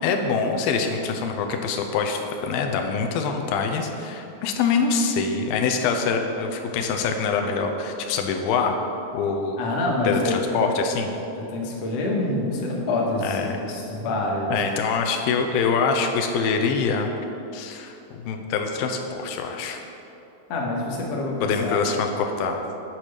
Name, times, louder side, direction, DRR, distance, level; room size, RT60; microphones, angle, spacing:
voice 1, 0.0-8.8 9.1-9.6 10.0-11.1 13.2-13.6 14.5-17.1 17.5-19.8 21.4-22.6, left 5 dB, 90° left, 4 dB, 2.4 m, -24 dB
voice 2, 9.6-10.6 11.4-14.6 20.5-21.8, left 2 dB, 60° left, -2 dB, 1.8 m, -26 dB
8.8 x 4.5 x 6.6 m, 2.9 s
omnidirectional pair, 4.1 m